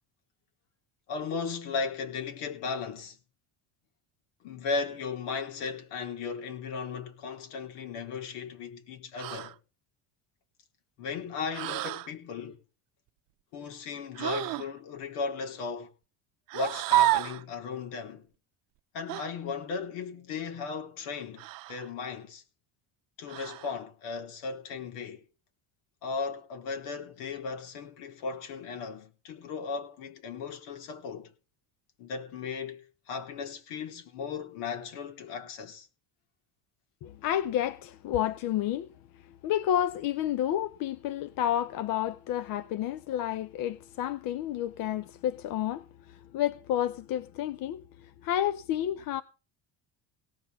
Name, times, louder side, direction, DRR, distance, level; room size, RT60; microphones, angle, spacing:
voice 1, 1.1-3.2 4.4-9.6 11.0-12.6 13.5-15.9 16.5-18.2 18.9-22.4 23.2-25.2 26.0-31.3 32.0-35.9, left 5 dB, 80° left, 3.7 m, -36 dB
sound 1, 9.2-9.6 11.5-12.1 14.2-14.7 16.5-17.4 19.1-19.3 21.4-21.9 23.3-23.8, right 17 dB, 55° right, 0.7 m, -29 dB
voice 2, 37.0-38.9 39.4-45.8 46.3-47.8 48.2-49.2, left 11 dB, 55° left, 0.8 m, -30 dB
17.5 x 6.1 x 8.2 m
cardioid pair, 160°, 41 cm